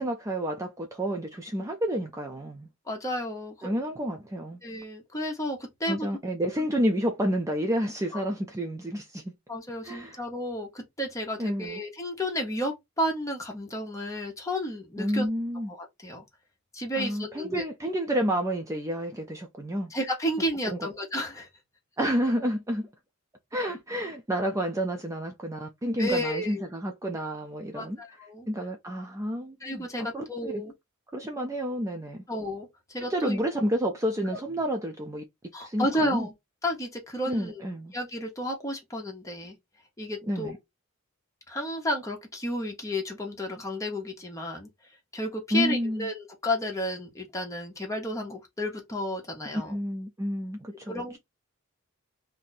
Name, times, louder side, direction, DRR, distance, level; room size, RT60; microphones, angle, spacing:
voice 1, 0.0-2.7 3.6-4.6 5.9-9.3 9.8-10.2 11.4-11.8 15.0-15.7 17.0-19.9 20.6-20.9 22.0-22.9 23.5-28.0 28.5-29.9 30.1-30.6 31.1-32.2 33.0-35.2 35.6-36.3 37.3-37.9 40.3-40.6 45.5-46.1 49.7-51.2, equal, 15° right, 0.4 m, -30 dB
voice 2, 2.9-3.7 4.6-6.1 6.6-6.7 8.1-8.2 9.5-15.3 15.7-16.2 16.7-17.6 19.9-21.5 26.0-26.7 27.7-28.5 29.6-30.7 32.3-33.4 35.5-36.3 36.6-37.6 37.9-39.6 40.0-40.5 41.5-44.7 45.1-49.8 50.9-51.2, equal, 15° left, 1.0 m, -32 dB
2.6 x 2.6 x 4.0 m
head